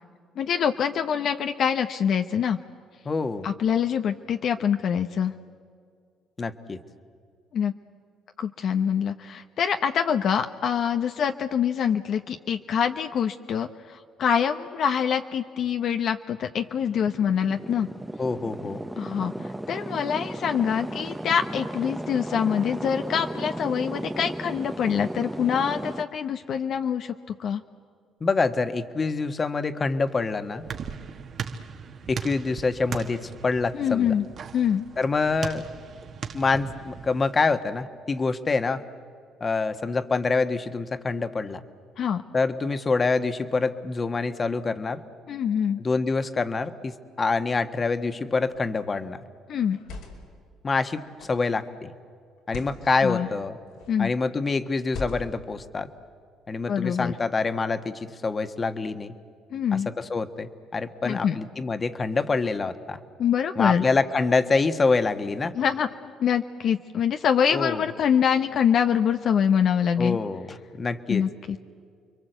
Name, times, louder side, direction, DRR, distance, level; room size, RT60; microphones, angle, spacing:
voice 1, 0.4-2.6 3.4-5.3 7.5-7.7 8.4-17.9 19.0-27.1 27.4-27.6 33.7-34.2 34.5-34.9 42.0-42.2 45.3-45.8 49.5-49.8 53.0-53.3 53.9-54.1 56.7-57.1 59.5-59.9 61.0-61.4 63.2-63.8 65.5-70.2 71.1-71.6, left 8 dB, 60° left, 7 dB, 0.9 m, -25 dB
voice 2, 3.0-3.5 6.4-6.8 18.2-18.8 28.2-30.6 32.1-34.1 35.0-35.6 36.3-38.8 39.4-41.6 42.3-45.0 45.8-49.2 50.6-51.9 52.5-53.6 54.0-55.9 56.5-59.1 59.7-63.0 63.6-65.5 67.5-67.8 70.0-71.2, left 4 dB, 30° left, 9 dB, 1.5 m, -26 dB
sound 1, 16.6-26.0, right 1 dB, 10° right, 0.9 m, -35 dB
sound 2, 30.1-37.3, right 6 dB, 50° right, 1.7 m, -38 dB
sound 3, 48.5-48.8 49.6-50.4 51.2-51.5 52.4-52.8 53.7-54.1 54.9-55.5, left 3 dB, 85° left, 4.8 m, -40 dB
29.5 x 22.5 x 8.0 m, 2.2 s
cardioid pair, 85°, 0 cm